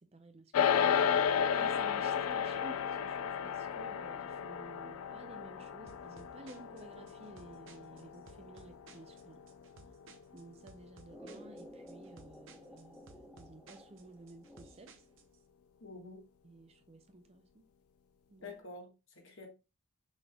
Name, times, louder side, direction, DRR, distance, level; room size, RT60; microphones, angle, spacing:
voice 1, 0.0-9.4 10.3-15.1 16.4-17.6 18.3-18.6, right 2 dB, 25° right, 0.4 m, -54 dB
sound 1, 0.5-10.1, left 8 dB, 75° left, 0.4 m, -33 dB
sound 2, 5.9-15.4, right 3 dB, 60° right, 0.7 m, -59 dB
sound 3, 11.1-15.1, equal, 5° right, 0.8 m, -54 dB
voice 2, 15.8-16.2 18.4-19.5, left 3 dB, 55° left, 1.5 m, -48 dB
6.3 x 3.5 x 2.2 m
head